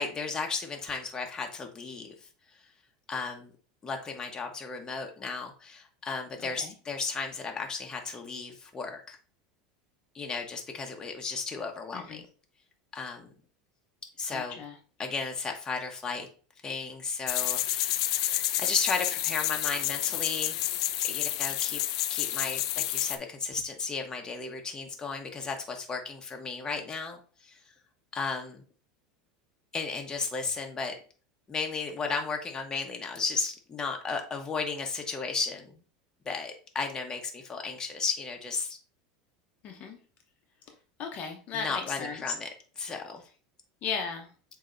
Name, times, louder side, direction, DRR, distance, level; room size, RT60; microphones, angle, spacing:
voice 1, 0.0-2.1 3.1-3.5 3.8-9.2 10.1-12.3 12.9-13.3 14.2-14.6 15.0-16.3 16.6-20.6 21.0-21.8 22.1-27.6 28.1-28.6 29.7-30.9 31.5-35.8 36.2-38.8 41.5-42.5 42.8-43.2, left 4 dB, 20° left, 2 dB, 1.0 m, -34 dB
voice 2, 14.3-14.8 39.6-40.0 41.0-42.2 43.8-44.3, left 5 dB, 45° left, 3 dB, 0.8 m, -36 dB
sound 1, 17.3-23.2, left 14 dB, 75° left, 0.4 m, -29 dB
7.5 x 2.8 x 2.5 m, 0.38 s
supercardioid pair, 120°, 4 cm